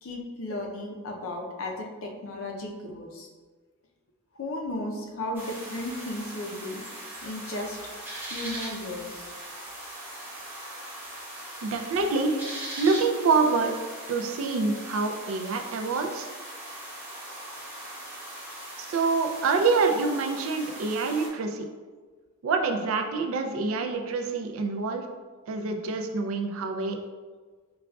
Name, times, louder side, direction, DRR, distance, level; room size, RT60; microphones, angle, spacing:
voice 1, 0.0-3.3 4.3-6.8 7.2-7.8 8.3-9.3, left 1 dB, 65° left, 1 dB, 0.5 m, -35 dB
sound 1, 5.3-21.3, right 1 dB, 10° right, 0.8 m, -40 dB
voice 2, 11.6-12.4 12.8-13.7 14.1-16.3 18.8-21.7 22.4-25.0 25.5-27.0, right 4 dB, 70° right, 4 dB, 0.4 m, -26 dB
4.8 x 2.3 x 2.3 m, 1.4 s
head